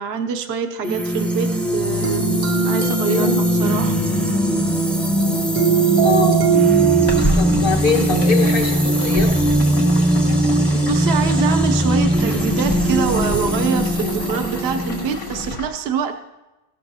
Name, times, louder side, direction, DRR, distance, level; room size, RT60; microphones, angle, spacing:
voice 1, 0.0-4.0 10.7-16.2, right 7 dB, 75° right, 6 dB, 0.9 m, -25 dB
sound 1, 0.8-15.5, right 1 dB, ahead, 0.7 m, -20 dB
sound 2, 2.0-7.2, right 8 dB, 50° right, 0.6 m, -21 dB
voice 2, 3.0-3.4 5.9-6.4 7.3-9.4 14.0-14.2, left 5 dB, 55° left, 1 dB, 1.6 m, -23 dB
sound 3, 7.1-15.7, equal, 80° left, 2.2 m, -29 dB
15.5 x 12.5 x 2.8 m, 1.0 s
omnidirectional pair, 1.1 m